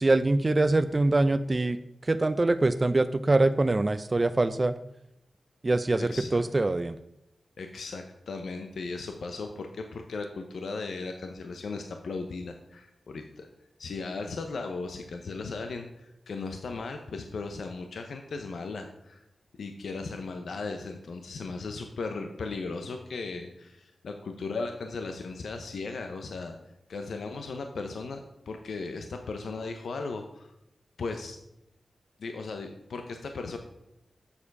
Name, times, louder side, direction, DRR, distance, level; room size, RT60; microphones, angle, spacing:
voice 1, 0.0-4.8 5.6-7.0, right 2 dB, 35° right, 11 dB, 0.5 m, -24 dB
voice 2, 6.0-6.4 7.6-13.5 13.8-19.2 19.6-26.6 26.9-30.5 31.0-31.4 32.2-33.6, left 3 dB, 80° left, 5 dB, 0.8 m, -37 dB
7.1 x 6.8 x 5.3 m, 0.85 s
cardioid pair, 50°, 0 cm